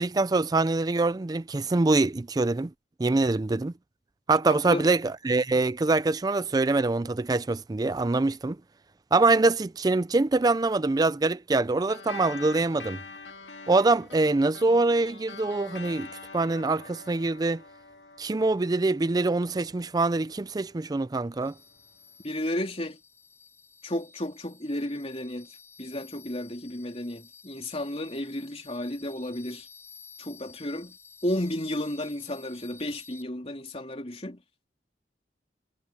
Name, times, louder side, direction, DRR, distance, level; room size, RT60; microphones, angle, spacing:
voice 1, 0.0-2.7 3.0-3.7 4.3-8.6 9.1-13.0 13.7-16.1 16.3-17.6 18.2-21.5, right 3 dB, 20° right, 0.4 m, -24 dB
voice 2, 4.5-4.9 22.2-23.0 23.8-25.5 25.8-29.7 30.2-31.0 31.2-34.4, left 1 dB, 35° left, 3.3 m, -33 dB
sound 1, 11.9-20.7, left 4 dB, 90° left, 2.1 m, -45 dB
sound 2, 21.4-33.2, left 5 dB, 15° left, 7.9 m, -53 dB
head